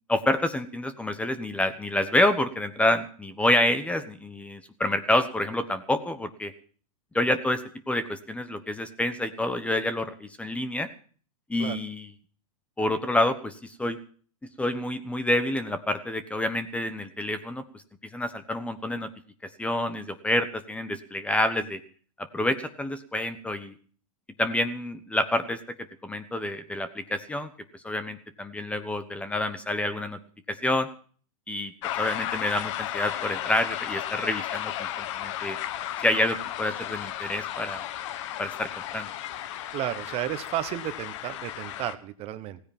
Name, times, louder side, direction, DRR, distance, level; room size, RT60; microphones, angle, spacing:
voice 1, 0.1-6.5 7.1-7.6 7.9-10.9 11.5-12.1 12.8-14.0 14.6-17.6 18.1-19.1 19.6-21.8 22.2-23.7 24.4-25.6 26.0-27.5 27.8-30.2 30.5-30.9 31.5-35.6 36.0-37.8 38.4-39.1, left 1 dB, 5° left, 12 dB, 1.1 m, -28 dB
sound 1, 31.8-41.9, left 12 dB, 55° left, 1.2 m, -34 dB
voice 2, 39.7-42.6, right 13 dB, 30° right, 13 dB, 1.2 m, -32 dB
17.0 x 9.7 x 7.3 m, 0.43 s
hypercardioid pair, 135°, 19 cm